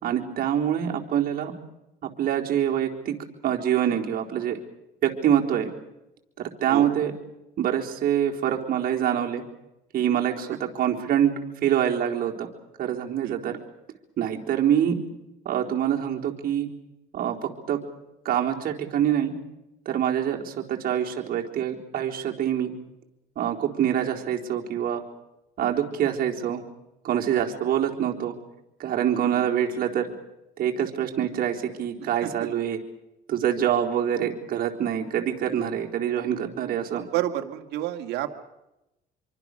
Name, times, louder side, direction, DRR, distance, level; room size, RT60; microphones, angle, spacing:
voice 1, 0.0-1.5 2.0-3.1 3.4-4.6 5.0-5.7 6.4-7.1 7.6-9.4 9.9-11.3 11.6-12.5 12.8-13.6 14.2-15.0 15.5-16.7 17.1-17.8 18.2-19.3 19.9-22.7 23.4-25.0 25.6-26.6 27.0-28.4 28.8-30.1 30.6-32.8 33.3-37.0, right 10 dB, 60° right, 1 dB, 4.0 m, -25 dB
voice 2, 13.2-13.6 27.7-27.8 29.1-29.5 32.2-32.5 36.9-38.3, right 13 dB, 85° right, 5 dB, 2.1 m, -31 dB
27.0 x 24.0 x 6.7 m, 0.91 s
cardioid pair, 110°, 17 cm